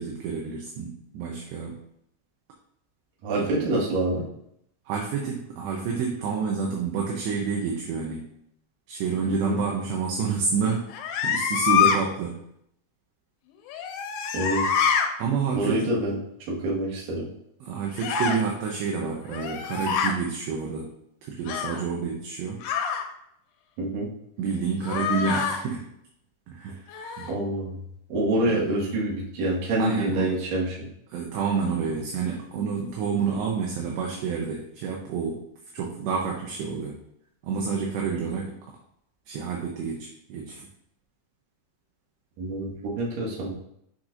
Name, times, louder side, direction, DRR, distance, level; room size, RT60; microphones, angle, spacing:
voice 1, 0.0-1.8 3.4-3.7 4.9-8.2 8.9-10.9 11.2-12.4 15.2-15.9 17.6-20.9 21.2-22.6 24.4-25.9 26.5-27.3 28.5-28.6 29.8-30.3 31.1-35.4 35.7-37.0 37.4-38.6 39.3-40.7, right 5 dB, 75° right, -1 dB, 2.8 m, -29 dB
voice 2, 3.2-4.3 9.3-9.6 14.3-14.7 15.5-16.2 16.5-17.3 23.8-24.1 27.3-27.8 28.1-30.8 42.4-43.5, right 1 dB, 55° right, -5 dB, 2.8 m, -26 dB
sound 1, 10.9-12.0 13.7-15.1 18.0-18.4 19.3-20.1 21.5-21.8 22.6-23.1 24.8-25.6 26.9-27.4, left 7 dB, 90° left, 3.1 m, -25 dB
8.7 x 6.0 x 2.6 m, 0.74 s
omnidirectional pair, 5.6 m